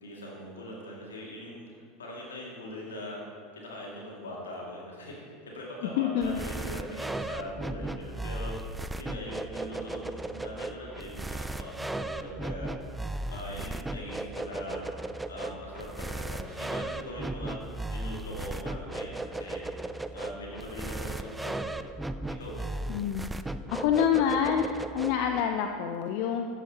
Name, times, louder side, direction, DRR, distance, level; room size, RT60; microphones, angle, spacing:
voice 1, 0.0-1.7 2.0-3.2 3.5-12.7 13.3-14.8 15.3-17.6 17.9-19.6 20.1-21.9 22.3-22.7, equal, 85° left, -3 dB, 2.4 m, -41 dB
voice 2, 6.0-6.4 22.9-23.2 23.7-26.5, left 8 dB, 60° left, 5 dB, 0.6 m, -27 dB
sound 1, 6.2-25.4, right 2 dB, 10° right, 0.4 m, -36 dB
13.5 x 9.0 x 3.0 m, 2.4 s
hypercardioid pair, 80°, 0 cm